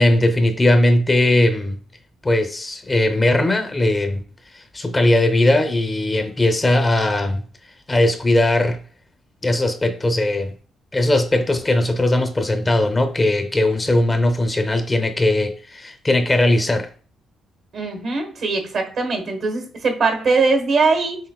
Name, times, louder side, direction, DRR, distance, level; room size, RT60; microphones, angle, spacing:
voice 1, 0.0-1.8 2.2-4.2 4.5-7.4 7.9-8.8 9.4-10.5 10.9-16.9, left 1 dB, 20° left, 0.6 m, -19 dB
voice 2, 17.7-21.2, right 4 dB, 65° right, 1.1 m, -21 dB
5.7 x 2.8 x 2.3 m
cardioid pair, 90°, 0 cm